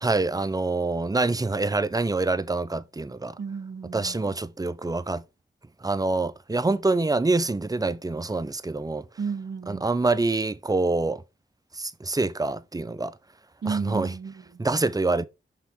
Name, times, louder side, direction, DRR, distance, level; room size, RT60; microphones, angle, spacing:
voice 1, 0.0-3.4 3.9-5.2 5.8-9.0 9.7-11.2 11.7-13.1 13.7-14.1 14.6-15.3, right 3 dB, 20° right, 0.5 m, -26 dB
voice 2, 3.4-4.4 9.2-9.8 13.6-14.6, right 5 dB, 55° right, 0.8 m, -33 dB
5.7 x 3.7 x 4.5 m
cardioid pair, 40°, 21 cm